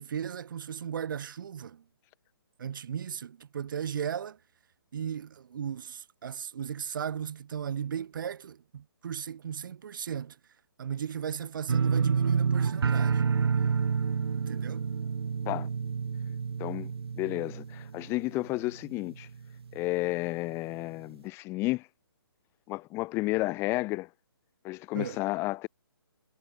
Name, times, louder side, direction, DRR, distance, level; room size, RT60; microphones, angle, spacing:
voice 1, 0.0-1.8 2.6-4.4 4.9-10.4 10.8-13.2 14.4-14.9 24.9-25.2, right 8 dB, 55° right, 1.5 m, -36 dB
sound 1, 11.7-18.5 18.8-19.4 19.8-19.9, right 6 dB, 75° right, 0.7 m, -28 dB
voice 2, 16.6-16.9 17.2-19.3 19.7-21.8 22.7-24.1 24.6-25.7, left 20 dB, 20° left, 1.6 m, -31 dB
hypercardioid pair, 150°, 13 cm